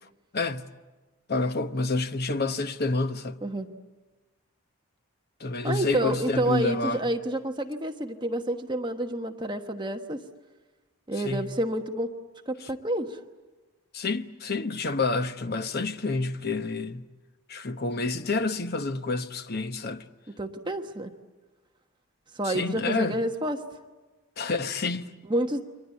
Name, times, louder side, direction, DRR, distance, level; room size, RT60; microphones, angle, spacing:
voice 1, 0.3-0.7 1.3-3.4 5.4-7.1 11.1-11.6 12.6-12.7 13.9-17.1 17.5-20.0 22.4-23.2 24.4-25.1, left 3 dB, 45° left, 1.0 m, -29 dB
voice 2, 5.6-10.2 11.1-12.1 12.5-13.2 20.3-21.1 22.3-23.6 25.3-25.6, right 1 dB, 20° right, 1.2 m, -29 dB
29.5 x 24.0 x 8.5 m
head